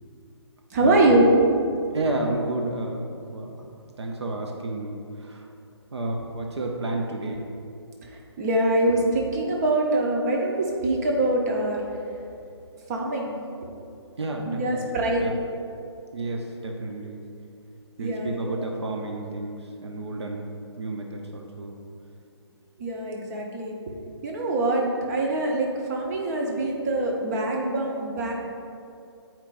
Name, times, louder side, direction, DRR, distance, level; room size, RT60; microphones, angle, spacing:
voice 1, 0.7-1.3 8.4-11.8 12.9-13.3 14.4-15.3 18.0-18.6 22.8-23.7 24.2-28.3, right 2 dB, 35° right, -1 dB, 0.9 m, -24 dB
voice 2, 1.9-3.7 4.0-5.5 5.9-7.5 14.2-15.0 15.2-15.4 16.1-17.2 18.0-20.5 20.8-21.7, right 2 dB, 75° right, 1 dB, 0.7 m, -31 dB
8.4 x 4.4 x 2.5 m, 2.6 s
figure-of-eight pair, 145°, 14 cm